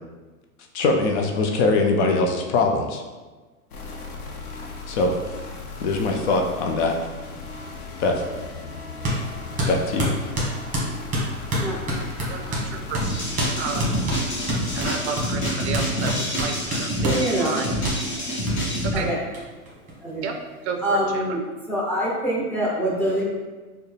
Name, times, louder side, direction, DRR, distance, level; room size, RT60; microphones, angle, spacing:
voice 1, 0.7-3.0 4.9-5.4 5.8-6.9 8.0-8.2 9.7-10.1, left 3 dB, 50° left, 3 dB, 0.5 m, -22 dB
sound 1, 3.7-15.0, left 3 dB, 80° left, 0.8 m, -37 dB
sound 2, 9.0-9.2 9.6-12.7 12.9-13.1 13.4-13.5 13.8-17.2 17.8-18.0 18.5-18.6 19.0-19.1 19.3-19.4 19.7-20.4, right 1 dB, 15° right, 1.2 m, -26 dB
voice 2, 12.3-13.1 13.6-13.9 14.7-17.8 18.9-19.1 20.2-20.3 20.6-21.4, right 5 dB, 50° right, 4 dB, 0.4 m, -31 dB
sound 3, 13.0-18.9, equal, 25° left, 1.0 m, -27 dB
voice 3, 17.0-17.5 18.9-19.2 20.0-20.2 20.8-21.4 21.7-23.2, right 1 dB, 5° left, -5 dB, 0.8 m, -24 dB
4.2 x 2.2 x 3.3 m, 1.3 s
hypercardioid pair, 120°, 44 cm